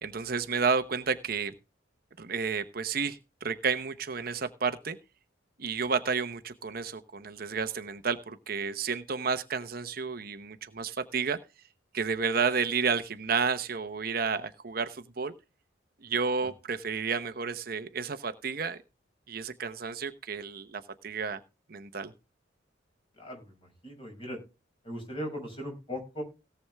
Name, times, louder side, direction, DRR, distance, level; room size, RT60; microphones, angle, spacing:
voice 1, 0.0-1.5 2.2-5.0 5.6-11.4 11.9-15.3 16.0-18.8 19.3-21.4 21.7-22.1, right 5 dB, 50° right, 9 dB, 0.9 m, -31 dB
voice 2, 23.2-24.4 24.8-26.2, equal, 30° left, 2 dB, 6.2 m, -39 dB
17.5 x 7.0 x 3.5 m, 0.29 s
head